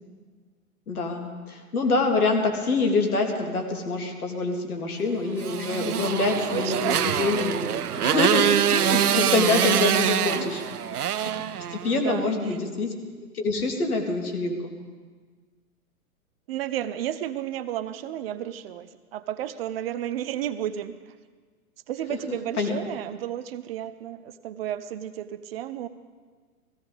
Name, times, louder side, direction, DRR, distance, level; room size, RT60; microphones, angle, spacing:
voice 1, 0.9-10.6 11.7-12.9 13.3-14.7 22.6-22.8, left 3 dB, 75° left, 2 dB, 2.4 m, -26 dB
Motorcycle, 5.4-12.1, right 9 dB, 80° right, 0.7 m, -24 dB
voice 2, 6.5-7.2 9.1-9.5 10.4-10.5 12.0-12.6 16.5-21.1 21.9-25.9, right 11 dB, 40° right, 14 dB, 0.6 m, -32 dB
16.0 x 16.0 x 4.0 m, 1.5 s
figure-of-eight pair, 110°, 45 cm